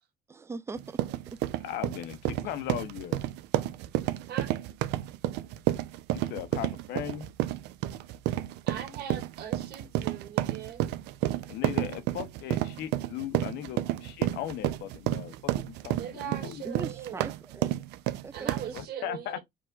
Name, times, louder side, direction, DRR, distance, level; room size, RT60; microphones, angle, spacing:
voice 1, 0.3-1.0 1.3-1.4 16.6-17.8 18.2-18.8, right 4 dB, 15° right, 0.4 m, -40 dB
sound 1, 0.8-18.8, right 14 dB, 90° right, 0.5 m, -31 dB
voice 2, 1.6-3.2 3.6-3.7 6.1-7.3 11.5-16.6 18.7-19.4, left 11 dB, 85° left, 0.8 m, -38 dB
voice 3, 8.7-10.8 15.9-17.3 18.3-19.4, right 9 dB, 70° right, 1.8 m, -40 dB
4.7 x 2.4 x 3.9 m
cardioid pair, 110°, 17 cm